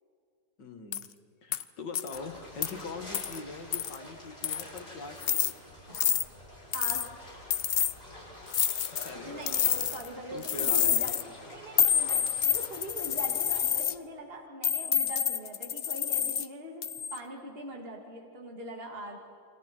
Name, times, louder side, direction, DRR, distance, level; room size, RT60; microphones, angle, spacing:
voice 1, 0.6-1.0 1.4-5.6 9.0-9.5 10.3-11.1, left 4 dB, 90° left, 5 dB, 2.5 m, -42 dB
sound 1, 0.9-1.1 1.5-1.6 1.9-2.2 2.6-2.7 3.1-3.4 3.7-4.0 4.4-4.8 5.2-5.5 5.9-6.2 6.7-7.1 7.5-7.9 8.5-9.1 9.5-10.1 10.4-11.2 11.8-13.9 14.6-16.5 16.8-17.2, left 9 dB, 60° left, 0.6 m, -28 dB
sound 2, 2.1-13.7, left 1 dB, 30° left, 6.5 m, -48 dB
voice 2, 6.7-7.1 9.3-11.2 11.4-19.2, right 1 dB, 35° right, 0 dB, 2.9 m, -42 dB
29.0 x 25.5 x 4.6 m, 2.3 s
omnidirectional pair, 1.8 m